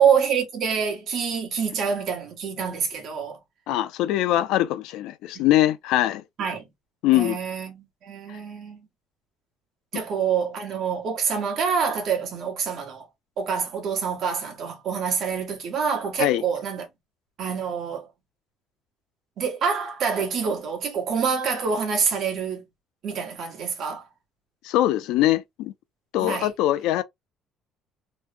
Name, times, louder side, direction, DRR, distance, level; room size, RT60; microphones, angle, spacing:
voice 1, 0.0-3.4 5.3-5.5 6.4-6.6 7.1-8.8 9.9-13.1 13.4-16.9 17.4-18.1 19.4-22.6 23.0-24.0 26.2-26.5, right 6 dB, 45° right, 1.2 m, -26 dB
voice 2, 3.7-6.2 7.0-7.4 8.3-8.4 16.2-16.4 24.6-25.7 26.1-27.0, left 14 dB, 80° left, 0.4 m, -22 dB
3.1 x 2.1 x 3.2 m
cardioid pair, 165°, 0 cm